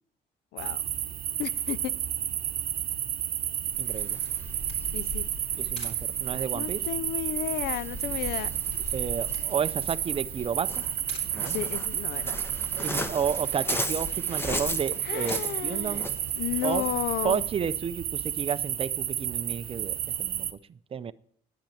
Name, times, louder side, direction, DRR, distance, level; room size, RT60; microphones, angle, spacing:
sound 1, 0.6-20.5, right 11 dB, 60° right, 1.0 m, -31 dB
voice 1, 1.4-1.9 4.9-5.3 6.5-8.5 11.4-12.4 15.0-16.0 16.4-17.4, left 13 dB, 70° left, 0.4 m, -33 dB
Waves surf, 3.7-17.5, left 1 dB, 15° left, 1.2 m, -38 dB
voice 2, 3.8-4.2 5.6-6.8 8.9-10.8 11.3-11.6 12.8-16.1 16.6-16.9 17.2-20.5 20.9-21.1, right 7 dB, 35° right, 0.6 m, -32 dB
Camera, 3.9-16.4, left 2 dB, 40° left, 4.9 m, -52 dB
10.5 x 7.3 x 9.3 m
cardioid pair, 110°, 17 cm